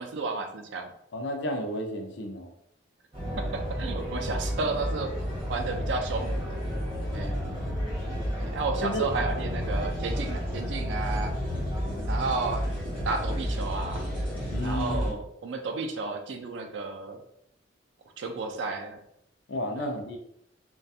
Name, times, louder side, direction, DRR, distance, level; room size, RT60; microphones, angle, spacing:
voice 1, 0.0-0.9 3.4-5.1 5.5-6.6 7.1-7.4 8.4-11.4 12.1-12.6 13.1-14.1 14.6-17.2 18.2-19.0 19.8-19.9, right 3 dB, 70° right, 5 dB, 0.4 m, -32 dB
voice 2, 1.1-2.5 7.1-7.6 8.8-9.1 14.5-15.0 19.5-20.2, equal, 65° left, 3 dB, 0.5 m, -32 dB
sound 1, 3.1-15.1, equal, 30° right, 1.0 m, -31 dB
2.3 x 2.2 x 2.6 m, 0.75 s
head